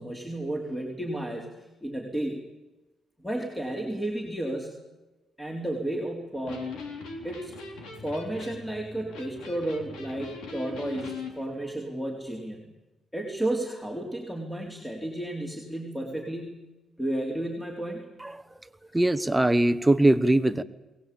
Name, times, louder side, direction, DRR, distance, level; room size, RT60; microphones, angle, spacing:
voice 1, 0.0-1.5 1.8-2.4 3.2-4.7 5.4-6.7 7.2-7.5 8.0-12.6 13.1-16.6 17.0-18.1, right 1 dB, 5° left, 0 dB, 4.2 m, -32 dB
Electric guitar, 6.3-11.3, left 4 dB, 80° left, 4.3 m, -40 dB
voice 2, 18.9-20.6, right 1 dB, 10° right, 13 dB, 1.2 m, -21 dB
22.5 x 18.5 x 8.8 m, 1.0 s
cardioid pair, 90°, 0 cm